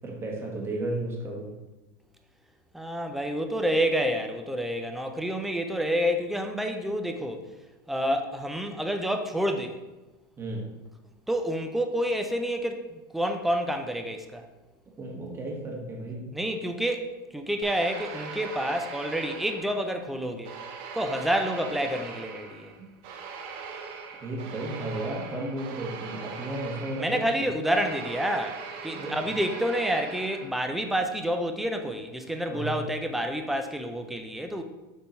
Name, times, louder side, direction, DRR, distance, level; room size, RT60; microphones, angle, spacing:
voice 1, 0.0-1.5 10.4-10.6 15.0-16.3 22.8-22.9 24.2-27.2 28.9-29.1 32.5-32.8, right 1 dB, 20° right, -1 dB, 1.5 m, -34 dB
voice 2, 2.7-7.5 7.9-9.8 11.3-14.5 16.3-20.5 20.9-22.7 27.0-34.6, equal, ahead, 5 dB, 0.5 m, -28 dB
sound 1, 17.6-20.0 20.4-30.8, right 5 dB, 50° right, 0.9 m, -41 dB
6.9 x 3.6 x 4.4 m, 1.1 s
supercardioid pair, 130°, 11 cm